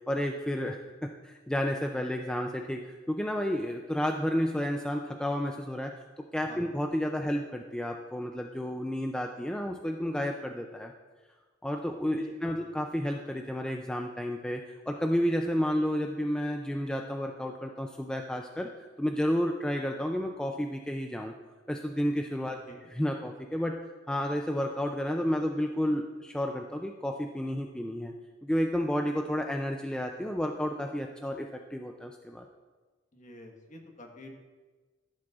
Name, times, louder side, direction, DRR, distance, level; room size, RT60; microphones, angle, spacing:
voice 1, 0.1-5.9 6.3-10.9 11.6-18.7 19.0-21.3 21.7-23.8 24.1-28.1 28.4-32.5, equal, 5° left, 2 dB, 0.3 m, -31 dB
voice 2, 12.1-12.7 22.5-22.9 33.1-34.3, left 1 dB, 40° left, 1 dB, 1.3 m, -49 dB
14.5 x 7.5 x 2.4 m, 1.3 s
head